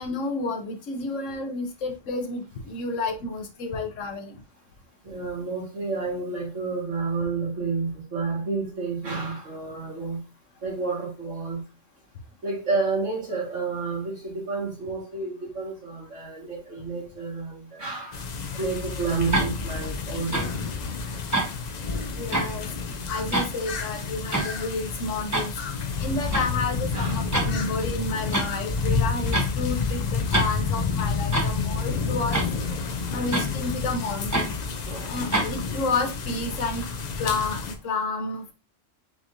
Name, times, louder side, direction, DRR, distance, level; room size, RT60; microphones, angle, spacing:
voice 1, 0.0-4.4 22.1-22.7 23.1-32.4 33.1-34.5 35.1-36.8 37.2-38.5, left 3 dB, 85° left, 1.2 m, -30 dB
voice 2, 5.0-10.2 10.6-11.6 12.4-20.8 26.9-27.3 33.1-33.3 34.8-35.3, right 4 dB, 80° right, 2.1 m, -30 dB
sound 1, 18.1-37.7, left 4 dB, 50° left, 0.5 m, -29 dB
sound 2, 19.3-19.5 20.3-20.5 21.3-21.5 22.3-22.5 23.3-23.5 24.3-24.5 25.3-25.5 26.3-26.5 27.3-27.5 28.3-28.5 29.3-29.5 30.3-30.5 31.3-31.5 32.3-32.5 33.3-33.5 34.3-34.5 35.3-35.5, right 2 dB, 15° right, 0.8 m, -25 dB
6.0 x 3.2 x 2.5 m
omnidirectional pair, 1.3 m